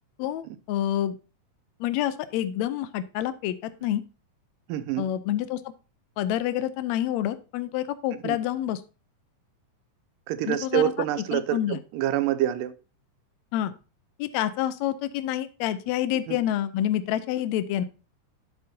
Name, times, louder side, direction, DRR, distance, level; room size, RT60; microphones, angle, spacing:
voice 1, 0.2-1.2 1.8-4.0 5.0-5.7 6.2-8.8 10.4-10.9 11.3-11.8 13.5-13.7 14.2-17.8, left 12 dB, 85° left, 12 dB, 1.6 m, -28 dB
voice 2, 4.7-5.1 8.2-8.4 10.3-12.7 16.3-16.4, right 12 dB, 85° right, 14 dB, 2.3 m, -26 dB
10.5 x 7.5 x 2.7 m, 0.32 s
omnidirectional pair, 3.9 m